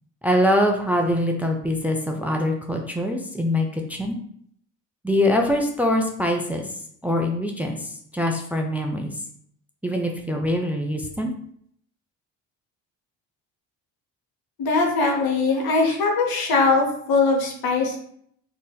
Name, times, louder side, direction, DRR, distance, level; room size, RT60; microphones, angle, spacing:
voice 1, 0.2-4.2 5.0-6.7 7.0-9.1 9.8-11.3, left 1 dB, 5° right, 2 dB, 0.3 m, -23 dB
voice 2, 14.6-18.0, left 3 dB, 55° left, 1 dB, 0.9 m, -21 dB
2.5 x 2.0 x 3.7 m, 0.65 s
hypercardioid pair, 55°, 43 cm